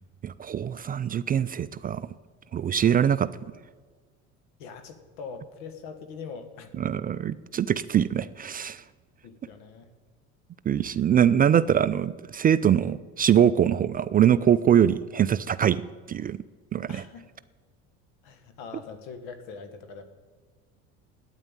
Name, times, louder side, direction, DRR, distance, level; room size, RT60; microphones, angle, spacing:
voice 1, 0.2-2.1 2.5-3.3 6.8-8.8 10.7-15.8 16.1-16.4 16.7-17.0, right 9 dB, 25° right, 14 dB, 0.3 m, -23 dB
voice 2, 4.6-6.8 9.2-9.9 16.9-17.3 18.2-20.0, left 5 dB, 75° left, 9 dB, 1.6 m, -42 dB
9.2 x 8.9 x 8.8 m, 1.5 s
supercardioid pair, 85°, 35 cm